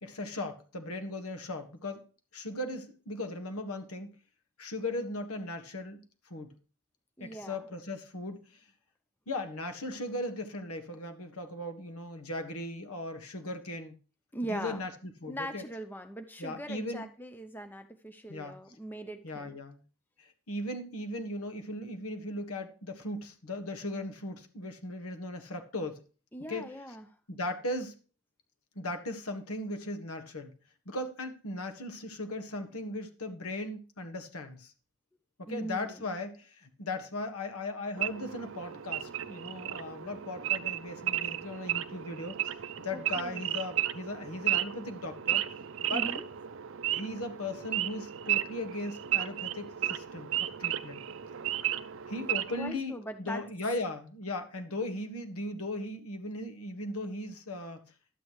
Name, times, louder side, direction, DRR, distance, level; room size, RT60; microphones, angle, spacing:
voice 1, 0.0-2.0 2.3-4.1 4.6-6.0 6.3-6.5 7.2-8.6 9.3-13.9 14.5-15.6 16.4-17.0 18.3-18.5 19.2-19.8 20.2-26.0 26.5-26.7 27.3-27.9 28.7-30.5 30.8-34.7 35.4-42.5 42.8-45.4 45.8-46.1 46.9-51.0 52.1-57.8, left 1 dB, 80° left, 5 dB, 1.6 m, -38 dB
voice 2, 7.2-7.6 14.3-14.8 15.3-19.6 26.3-27.2 35.5-36.1 42.9-43.5 45.9-46.3 52.5-53.4, right 1 dB, 10° left, 8 dB, 0.6 m, -41 dB
Wild animals / Idling, 38.0-52.7, right 12 dB, 60° right, 0.5 m, -34 dB
11.5 x 8.4 x 3.1 m, 0.36 s
head